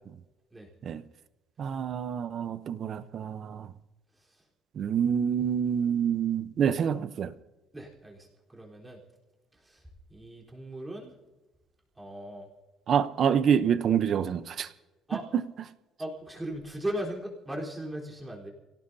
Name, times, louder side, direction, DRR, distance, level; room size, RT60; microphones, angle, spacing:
voice 1, 1.6-3.7 4.8-7.3 12.9-14.7, right 8 dB, 45° right, 0.8 m, -27 dB
voice 2, 7.7-9.0 9.6-9.8 10.1-11.1 12.0-12.5 15.1-15.2 16.0-18.5, right 1 dB, 10° right, 3.9 m, -38 dB
28.5 x 17.5 x 2.8 m
cardioid pair, 135°, 0 cm